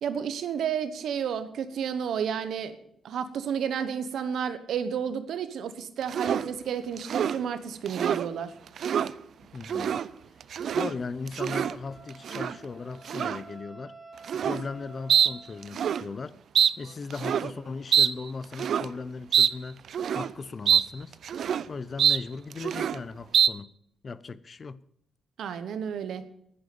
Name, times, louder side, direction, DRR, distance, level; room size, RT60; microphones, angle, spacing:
voice 1, 0.0-2.7 3.0-8.5 25.4-26.2, right 8 dB, 80° right, 1.1 m, -31 dB
sound 1, 6.1-6.5 7.0-7.4 7.9-8.3 8.7-9.1 9.6-10.1 10.4-10.9 11.3-11.8 12.2-12.6 13.1-13.4 14.2-14.6 15.1-15.3 15.6-16.0 16.6-16.7 17.1-17.5 17.9-18.1 18.5-18.9 19.3-19.5 19.9-20.3 20.7-20.8 21.1-21.6 22.0-22.2 22.5-23.0 23.3-23.5, right 8 dB, 65° right, 0.5 m, -25 dB
voice 2, 9.4-10.0 10.7-14.0 14.3-16.4 16.8-19.8 20.1-21.2 21.7-23.7 24.0-24.8, left 4 dB, 35° left, 0.5 m, -37 dB
Wind instrument woodwind instrument, 11.9-15.9, right 3 dB, 10° right, 3.7 m, -50 dB
10.5 x 9.9 x 8.5 m
wide cardioid pair, 155°, 0 cm